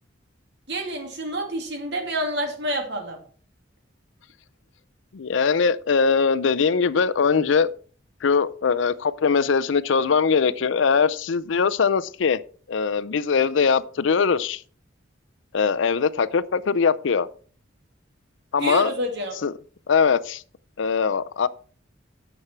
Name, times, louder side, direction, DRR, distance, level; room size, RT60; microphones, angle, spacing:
voice 1, 0.7-3.2 18.6-19.4, right 1 dB, 60° right, 2.7 m, -28 dB
voice 2, 5.1-7.7 8.2-12.4 12.7-14.6 15.5-17.3 18.5-18.9 19.4-19.5 19.9-20.4 20.8-21.5, left 5 dB, 70° left, 0.5 m, -21 dB
9.8 x 7.3 x 4.5 m
head